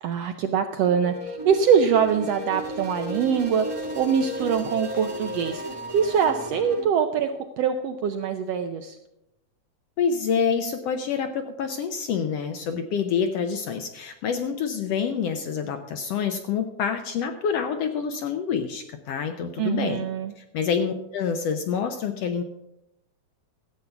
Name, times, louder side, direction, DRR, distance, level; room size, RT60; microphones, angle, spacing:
voice 1, 0.0-3.7 4.0-5.6 5.9-7.3 7.6-9.0 19.6-20.3, right 7 dB, 75° right, 7 dB, 1.5 m, -23 dB
sound 1, 0.8-6.8, equal, 20° right, 0.9 m, -34 dB
voice 2, 10.0-20.1 20.4-22.4, left 6 dB, 70° left, 7 dB, 1.5 m, -27 dB
13.5 x 8.3 x 5.8 m, 0.87 s
omnidirectional pair, 3.5 m